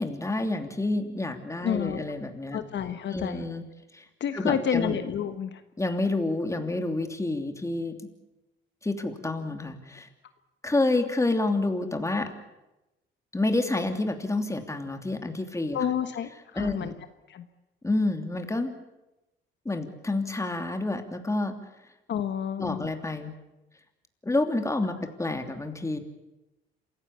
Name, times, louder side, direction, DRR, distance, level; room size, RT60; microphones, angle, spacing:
voice 1, 0.0-2.6 3.1-3.6 3.9-4.0 4.3-5.0 5.8-8.1 8.8-10.1 10.6-12.3 13.3-15.8 16.5-17.0 17.8-18.7 19.6-21.6 22.6-23.3 24.2-26.0, left 2 dB, 15° left, 6 dB, 3.0 m, -28 dB
voice 2, 1.6-2.0 2.5-3.4 4.2-5.6 15.7-16.9 17.3-17.5 22.1-22.9, left 8 dB, 65° left, 9 dB, 1.4 m, -29 dB
27.5 x 16.0 x 8.4 m, 0.98 s
cardioid pair, 90°, 20 cm